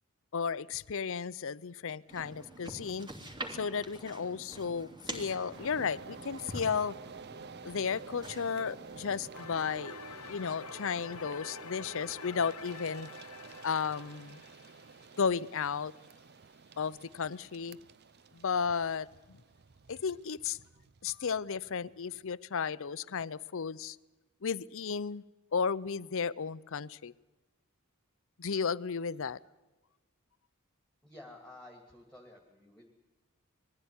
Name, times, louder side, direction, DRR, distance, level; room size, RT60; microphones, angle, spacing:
voice 1, 0.3-3.1 3.5-6.9 7.6-10.0 10.3-13.1 13.6-14.4 15.2-15.9 16.8-17.8 18.3-19.1 19.9-20.6 21.0-24.0 24.4-25.2 25.5-27.1 28.4-29.4, left 6 dB, 60° left, 0.6 m, -34 dB
sound 1, 2.1-9.3, right 1 dB, 20° right, 3.1 m, -46 dB
sound 2, 5.5-22.3, right 5 dB, 50° right, 0.6 m, -51 dB
sound 3, 9.3-16.2, left 8 dB, 90° left, 0.9 m, -49 dB
voice 2, 31.0-32.9, left 1 dB, 5° left, 2.5 m, -52 dB
21.5 x 15.0 x 9.7 m
head